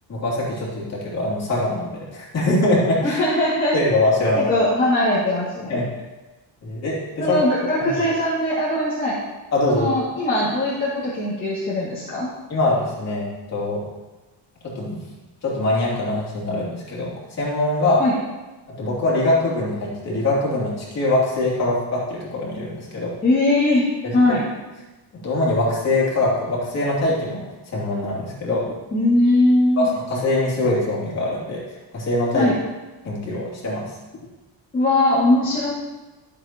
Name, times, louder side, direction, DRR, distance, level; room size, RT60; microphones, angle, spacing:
voice 1, 0.1-3.2 3.7-4.4 5.7-5.9 6.6-7.4 7.8-7.9 9.5-9.9 12.5-13.8 14.6-15.0 15.4-17.1 17.4-18.0 18.8-23.1 25.2-27.4 27.7-28.7 29.8-31.6 31.9-32.5 33.0-33.9, left 2 dB, 35° left, -6 dB, 3.0 m, -23 dB
voice 2, 3.0-3.7 4.4-5.8 7.2-9.2 9.7-12.3 18.0-18.1 23.2-24.5 28.9-29.9 32.3-32.5 34.7-35.7, left 1 dB, 20° left, -8 dB, 2.3 m, -20 dB
13.5 x 7.8 x 3.0 m, 1.1 s
cardioid pair, 160°, 46 cm